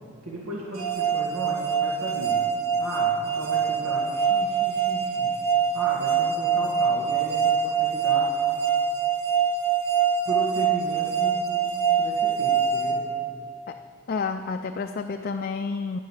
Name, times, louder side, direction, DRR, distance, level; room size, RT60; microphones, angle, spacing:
voice 1, 0.2-2.4 2.8-5.4 5.7-8.3 10.3-11.6 12.0-13.0, right 1 dB, 75° right, -4 dB, 1.9 m, -35 dB
sound 1, 0.8-13.7, right 6 dB, 60° right, 1.3 m, -24 dB
voice 2, 14.1-16.0, left 4 dB, 40° left, 6 dB, 0.4 m, -30 dB
10.5 x 9.5 x 6.5 m, 2.5 s
head